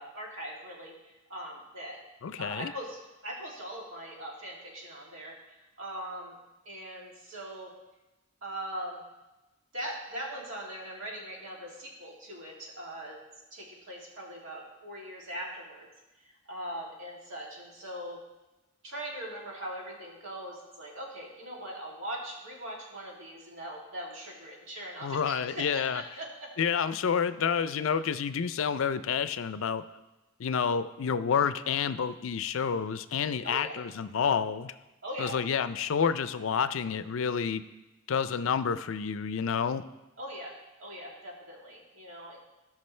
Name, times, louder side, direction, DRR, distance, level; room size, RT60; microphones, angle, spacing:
voice 1, 0.0-2.0 2.4-5.3 5.8-6.3 6.7-7.7 8.4-9.0 9.7-13.2 13.5-15.9 16.5-18.2 18.8-26.5 33.4-33.8 35.0-35.4 40.2-40.5 40.8-42.4, right 1 dB, 70° right, -3 dB, 2.7 m, -40 dB
voice 2, 2.2-2.7 25.0-26.0 26.6-29.8 30.4-34.7 35.2-37.6 38.1-39.8, left 6 dB, 70° left, 13 dB, 0.4 m, -29 dB
18.0 x 6.0 x 3.2 m, 1.0 s
head